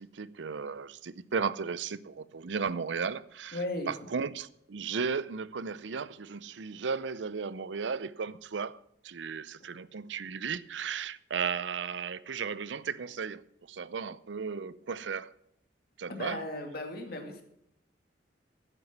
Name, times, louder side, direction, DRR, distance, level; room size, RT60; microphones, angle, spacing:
voice 1, 0.0-3.6 3.9-8.8 9.0-13.4 13.7-15.3 16.0-16.4, right 5 dB, 85° right, 0.6 m, -35 dB
voice 2, 3.5-3.9 9.6-9.7 16.1-17.4, left 1 dB, 60° left, 2.3 m, -36 dB
12.0 x 9.1 x 5.9 m
head